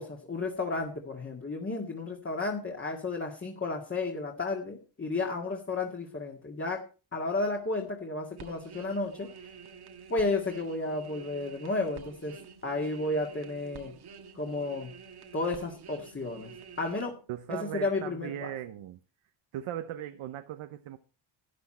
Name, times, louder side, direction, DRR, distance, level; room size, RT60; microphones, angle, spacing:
voice 1, 0.0-6.8 7.1-9.5 10.1-12.4 12.6-13.9 14.3-14.9 15.3-17.2 17.5-18.5, left 3 dB, 25° left, 0 dB, 2.1 m, -32 dB
sound 1, 8.4-17.0, right 6 dB, 50° right, 1.6 m, -49 dB
voice 2, 17.3-19.0 19.5-21.0, right 11 dB, 80° right, 9 dB, 1.0 m, -38 dB
13.0 x 9.6 x 4.3 m, 0.35 s
cardioid pair, 105°, 49 cm